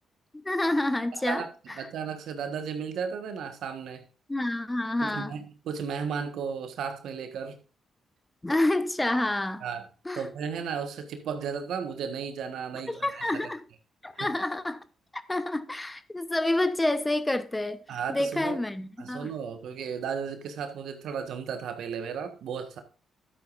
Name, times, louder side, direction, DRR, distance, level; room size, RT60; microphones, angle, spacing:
voice 1, 0.3-1.4 4.3-5.3 8.4-9.6 10.1-10.3 12.9-13.6 14.0-14.8 15.1-17.8 18.1-19.3, left 1 dB, 15° left, 1.0 m, -28 dB
voice 2, 1.1-1.5 1.7-4.0 5.0-7.6 9.6-9.9 10.1-13.4 14.2-14.3 17.9-18.6 19.0-22.8, right 6 dB, 70° right, 1.5 m, -34 dB
12.0 x 9.0 x 2.6 m
hypercardioid pair, 45°, 0 cm